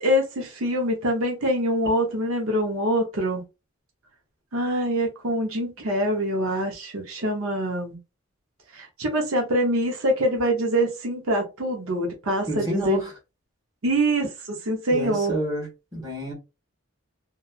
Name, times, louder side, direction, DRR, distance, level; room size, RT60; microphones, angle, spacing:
voice 1, 0.0-3.4 4.5-8.0 8.7-13.0 13.8-15.3, equal, 80° right, 0.7 m, -24 dB
voice 2, 12.5-13.1 14.9-16.3, right 1 dB, 20° right, 1.3 m, -29 dB
2.8 x 2.3 x 2.3 m
head